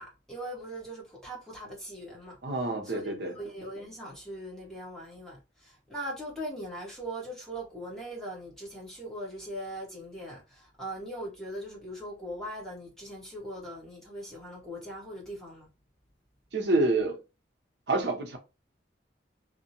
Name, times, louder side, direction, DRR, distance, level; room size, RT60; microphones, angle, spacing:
voice 1, 0.0-2.4 2.8-15.7, right 1 dB, 5° left, 1.0 m, -40 dB
voice 2, 2.4-3.4 16.5-17.2 17.9-18.4, right 2 dB, 65° right, 0.7 m, -27 dB
2.6 x 2.1 x 2.8 m
head